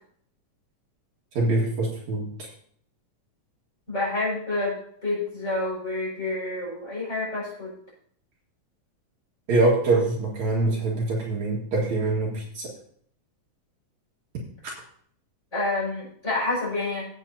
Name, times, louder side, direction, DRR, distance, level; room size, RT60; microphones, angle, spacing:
voice 1, 1.3-2.3 9.5-12.7, right 2 dB, 60° right, -3 dB, 3.1 m, -24 dB
voice 2, 3.9-4.7 5.0-7.7 15.5-17.1, left 2 dB, 20° left, -6 dB, 5.9 m, -28 dB
17.0 x 8.3 x 2.8 m, 0.62 s
omnidirectional pair, 3.8 m